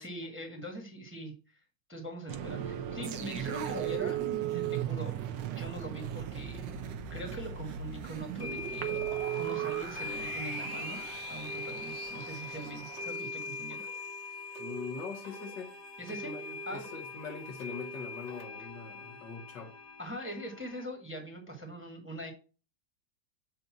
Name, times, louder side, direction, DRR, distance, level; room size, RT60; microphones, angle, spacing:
voice 1, 0.0-1.6 1.9-4.2 4.5-5.1 5.5-13.9 16.0-16.3 16.7-16.8 20.0-22.3, right 1 dB, 5° right, 1.2 m, -42 dB
sound 1, 2.3-13.1, right 12 dB, 60° right, 1.1 m, -38 dB
sound 2, 3.0-14.2 14.5-14.7, right 8 dB, 85° right, 1.4 m, -41 dB
sound 3, 7.3-7.4 8.4-20.8, left 3 dB, 40° left, 1.3 m, -42 dB
voice 2, 14.6-15.8 16.1-19.7, left 5 dB, 70° left, 1.8 m, -42 dB
7.8 x 2.7 x 5.9 m
omnidirectional pair, 2.0 m